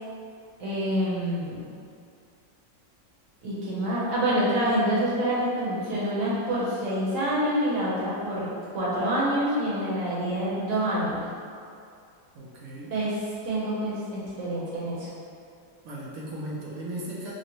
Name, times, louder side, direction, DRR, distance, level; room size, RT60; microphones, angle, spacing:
voice 1, 0.6-1.7 3.4-11.2 12.9-15.1, equal, 50° right, -8 dB, 1.1 m, -27 dB
voice 2, 12.3-13.0 15.8-17.3, right 1 dB, 70° right, -5 dB, 0.8 m, -37 dB
5.0 x 2.1 x 3.0 m, 2.4 s
omnidirectional pair, 2.0 m